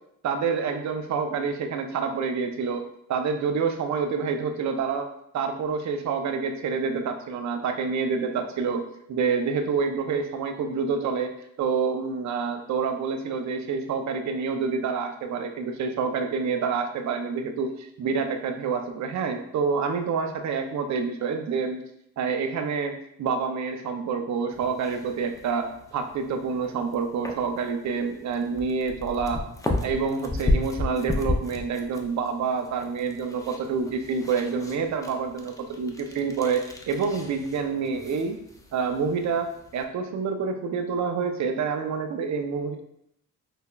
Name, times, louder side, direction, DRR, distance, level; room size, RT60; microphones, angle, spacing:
voice 1, 0.2-5.1 5.3-8.8 9.1-11.3 11.6-21.8 22.2-29.4 29.8-38.4 38.7-39.5 39.7-42.8, right 5 dB, 60° right, 6 dB, 0.5 m, -27 dB
sound 1, 24.5-39.8, left 2 dB, 10° left, 0.4 m, -34 dB
5.6 x 2.1 x 2.3 m, 0.74 s
cardioid pair, 90°, 33 cm